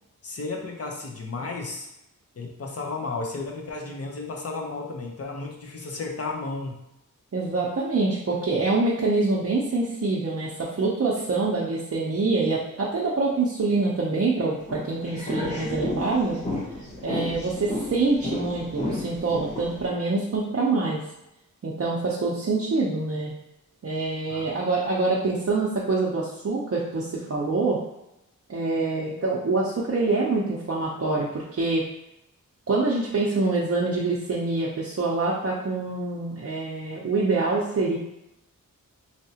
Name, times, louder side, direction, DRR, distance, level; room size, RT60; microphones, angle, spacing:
voice 1, 0.2-1.9 2.4-6.7 17.4-17.5 24.3-24.5, left 3 dB, 45° left, 1 dB, 0.7 m, -33 dB
voice 2, 7.3-16.4 17.0-21.0 21.6-23.3 23.8-27.8 28.5-31.8 32.7-38.0, right 3 dB, 45° right, -5 dB, 0.6 m, -25 dB
sound 1, 14.6-19.9, left 1 dB, 20° left, 1.2 m, -32 dB
3.2 x 2.8 x 2.8 m, 0.88 s
wide cardioid pair, 75°, 34 cm